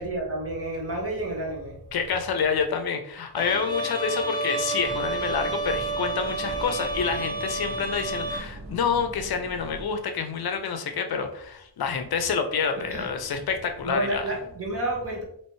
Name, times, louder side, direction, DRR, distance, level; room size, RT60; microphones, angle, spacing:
voice 1, 0.0-1.8 12.9-13.1 13.8-15.2, right 1 dB, 35° right, -2 dB, 1.2 m, -30 dB
voice 2, 1.9-14.2, left 6 dB, 65° left, 7 dB, 0.6 m, -28 dB
Bowed string instrument, 3.4-8.4, right 2 dB, 10° left, 0.4 m, -30 dB
sound 1, 4.8-9.9, right 2 dB, 55° right, 1.1 m, -41 dB
4.3 x 3.0 x 3.0 m, 0.68 s
wide cardioid pair, 140°, 41 cm